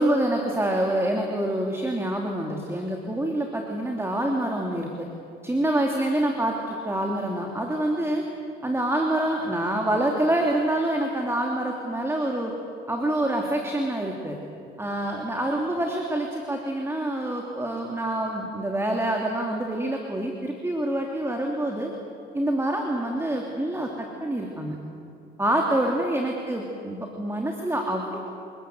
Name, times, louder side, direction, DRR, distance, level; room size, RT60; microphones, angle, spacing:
voice 1, 0.0-5.1 5.4-8.2 8.6-12.5 12.9-14.4 14.8-21.9 22.3-24.8 25.4-28.2, right 1 dB, 10° right, 1 dB, 2.9 m, -26 dB
30.0 x 19.5 x 7.9 m, 2.6 s
cardioid pair, 90°, 20 cm